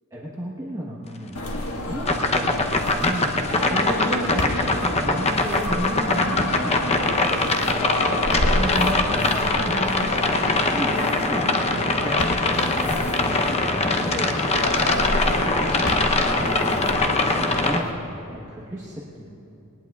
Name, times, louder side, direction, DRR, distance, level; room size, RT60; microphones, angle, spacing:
voice 1, 0.1-1.4 1.9-7.5 8.3-14.6 15.3-19.3, equal, 15° right, -5 dB, 1.2 m, -33 dB
sound 1, 1.3-17.9, left 1 dB, 75° left, 1.8 m, -28 dB
sound 2, 2.1-17.8, left 2 dB, 30° left, 0.8 m, -23 dB
20.5 x 19.5 x 2.4 m, 2.8 s
head